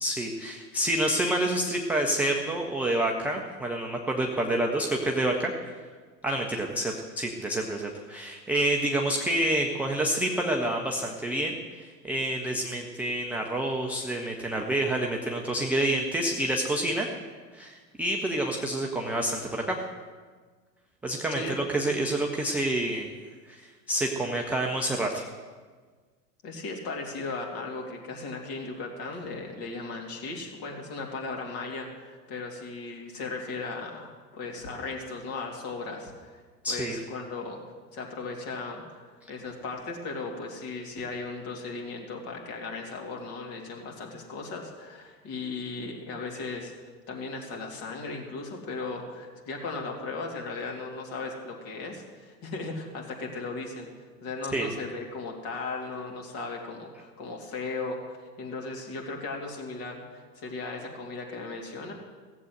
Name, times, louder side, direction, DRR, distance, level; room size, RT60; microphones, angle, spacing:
voice 1, 0.0-5.5 6.2-17.1 17.5-19.8 21.0-23.1 23.5-25.3 36.6-37.0 54.5-54.7, right 1 dB, 5° right, 0 dB, 0.3 m, -28 dB
voice 2, 26.4-36.4 36.7-37.6 37.9-46.7 47.1-53.9 54.2-61.9, left 3 dB, 45° left, 1 dB, 3.1 m, -37 dB
16.5 x 7.6 x 7.9 m, 1.5 s
figure-of-eight pair, 85°, 49 cm